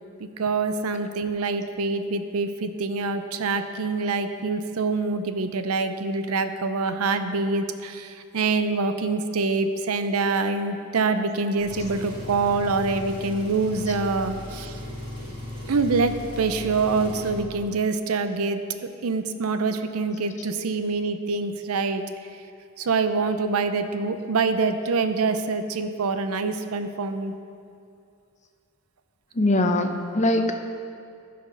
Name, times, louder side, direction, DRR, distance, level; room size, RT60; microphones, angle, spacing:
voice 1, 0.4-14.8 15.7-22.0 22.8-27.3, right 4 dB, 75° right, 9 dB, 0.6 m, -25 dB
Engine, 11.6-17.4, left 1 dB, 25° right, 1.6 m, -37 dB
voice 2, 29.3-30.5, left 1 dB, 30° left, 5 dB, 0.6 m, -22 dB
14.5 x 5.2 x 5.4 m, 2.4 s
head